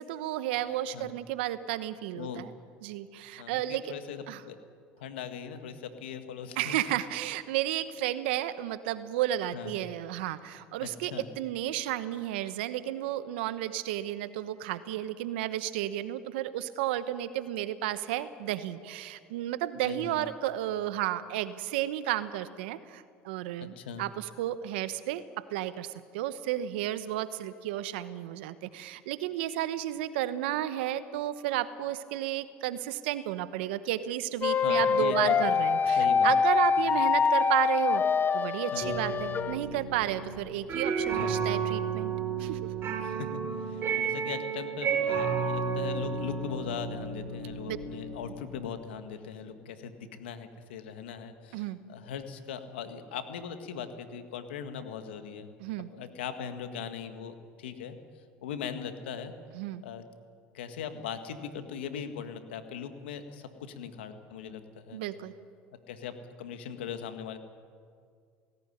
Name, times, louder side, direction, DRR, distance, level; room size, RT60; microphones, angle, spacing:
voice 1, 0.0-2.5 2.8-3.9 4.3-4.4 6.6-38.0 38.3-42.1 42.4-42.6 47.7-47.8 51.5-51.8 55.6-55.9 59.5-59.8 64.9-65.3, right 13 dB, 80° right, 13 dB, 1.0 m, -32 dB
voice 2, 3.4-4.6 5.0-6.8 9.5-9.8 10.8-11.3 19.8-20.3 23.6-24.0 34.6-35.4 36.0-36.3 36.8-36.9 38.7-39.0 41.1-41.4 43.0-43.3 43.6-55.5 55.9-58.0 58.4-59.3 59.8-60.0 60.5-65.0 65.9-67.4, left 7 dB, 90° left, 8 dB, 1.7 m, -40 dB
sound 1, 34.4-39.6, left 6 dB, 35° left, 1.3 m, -25 dB
sound 2, 38.8-48.6, right 6 dB, 45° right, 3.5 m, -32 dB
18.5 x 17.0 x 10.0 m, 2.1 s
hypercardioid pair, 80°, 6 cm